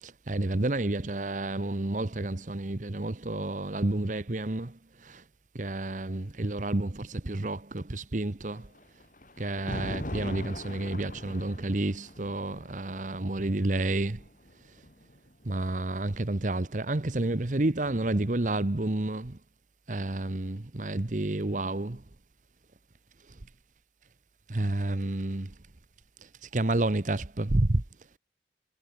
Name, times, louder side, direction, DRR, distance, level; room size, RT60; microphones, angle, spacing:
voice 1, 0.0-5.2 5.5-8.7 9.4-14.2 15.4-19.4 19.9-22.0 24.5-25.5 26.2-27.8, right 2 dB, 45° right, 1.0 m, -30 dB
Thunder, 8.4-15.6 16.7-18.4, left 1 dB, 50° left, 4.4 m, -42 dB
head